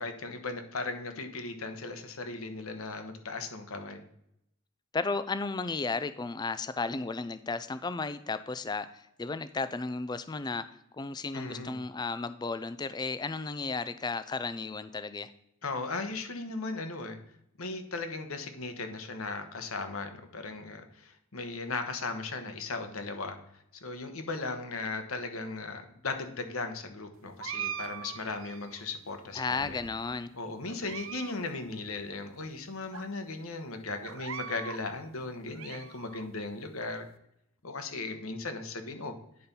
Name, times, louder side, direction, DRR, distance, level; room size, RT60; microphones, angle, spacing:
voice 1, 0.0-4.0 11.3-11.8 15.6-17.2 17.6-23.4 23.7-29.8 30.3-37.1 37.6-39.1, left 3 dB, 85° left, 7 dB, 1.2 m, -37 dB
voice 2, 4.9-15.3 29.4-30.3, left 4 dB, 20° left, 13 dB, 0.3 m, -34 dB
sound 1, 27.4-28.8 29.5-30.2 30.7-31.4 31.6-31.7 32.4-32.5 32.9-33.0 34.0-34.8 35.3-36.3, right 8 dB, 70° right, 0.6 m, -41 dB
9.5 x 4.3 x 5.3 m, 0.76 s
head